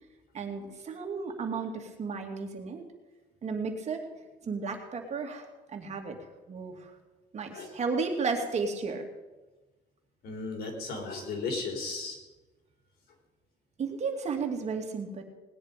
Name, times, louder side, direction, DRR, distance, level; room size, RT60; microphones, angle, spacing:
voice 1, 0.3-2.9 3.4-4.0 4.4-6.2 6.5-6.9 7.3-9.0 13.8-15.2, right 4 dB, 40° right, 4 dB, 2.4 m, -33 dB
voice 2, 10.2-12.2, left 3 dB, 70° left, 3 dB, 3.7 m, -35 dB
19.0 x 10.0 x 5.1 m, 1.2 s
cardioid pair, 110°, 17 cm